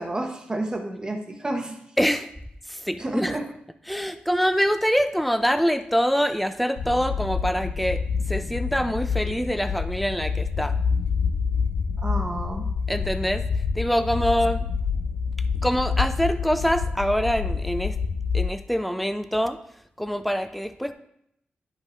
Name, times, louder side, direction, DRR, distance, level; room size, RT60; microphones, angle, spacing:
voice 1, 0.0-1.8 3.0-3.4 12.0-12.7, right 1 dB, 25° right, 3 dB, 0.9 m, -30 dB
voice 2, 2.0-2.3 2.7-3.4 3.9-10.7 12.9-13.4 13.8-14.7 15.6-17.9 18.3-19.6 20.0-20.9, equal, ahead, 10 dB, 0.4 m, -25 dB
sound 1, 6.8-18.5, left 5 dB, 90° left, 0.4 m, -27 dB
11.0 x 5.3 x 2.5 m, 0.75 s
wide cardioid pair, 120°, 3 cm